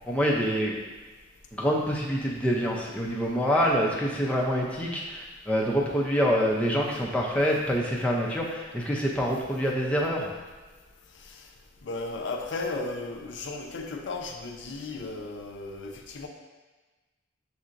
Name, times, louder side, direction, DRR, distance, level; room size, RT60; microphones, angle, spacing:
voice 1, 0.0-0.7 1.5-10.3, equal, 5° left, -3 dB, 0.5 m, -26 dB
voice 2, 11.8-16.3, left 3 dB, 65° left, 3 dB, 0.4 m, -35 dB
6.4 x 2.8 x 2.5 m, 1.2 s
head